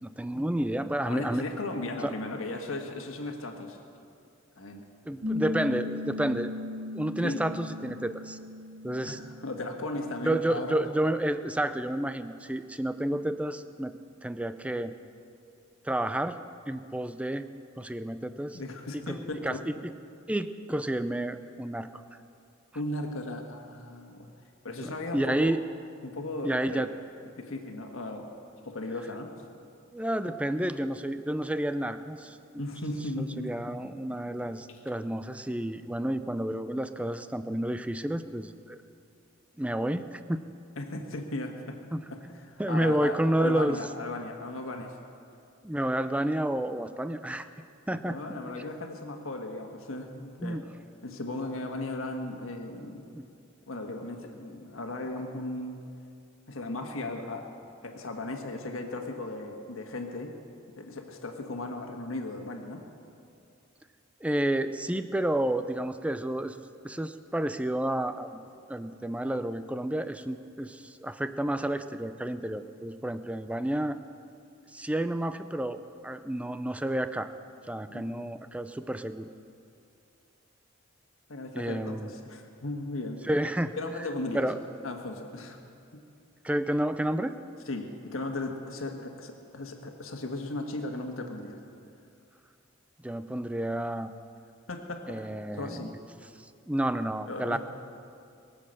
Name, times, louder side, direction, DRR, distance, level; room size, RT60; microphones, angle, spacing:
voice 1, 0.0-1.4 2.0-2.1 5.0-6.5 6.9-8.4 8.8-9.2 10.2-13.9 14.2-14.9 15.8-16.4 16.7-17.4 17.8-18.6 19.4-19.9 20.3-21.9 24.8-25.6 26.4-26.9 29.9-32.6 33.2-38.8 39.6-40.4 41.9-43.8 45.6-47.5 47.9-48.2 50.4-50.6 53.1-53.2 64.2-68.4 68.7-74.0 74.7-77.3 77.7-79.3 81.5-82.1 83.3-83.7 84.3-84.6 86.4-87.4 93.0-94.1 95.1-96.0 96.7-97.6, right 1 dB, 5° right, 11 dB, 0.5 m, -30 dB
voice 2, 1.0-3.8 4.6-4.8 7.2-7.5 9.0-10.8 18.5-19.6 22.7-24.3 24.6-25.5 26.0-26.9 27.4-29.3 32.6-33.5 33.8-34.2 40.8-41.8 42.1-45.0 48.1-50.6 51.0-53.0 53.7-55.8 56.5-57.5 57.8-60.3 60.8-62.8 77.9-78.2 81.3-83.2 83.8-84.5 84.8-85.6 85.9-86.0 87.7-91.6 94.7-95.2 95.5-96.0 97.3-97.6, left 2 dB, 80° left, 3 dB, 1.5 m, -36 dB
Piano, 5.2-10.3, left 3 dB, 80° right, 2.5 m, -37 dB
22.5 x 7.7 x 6.5 m, 2.5 s
head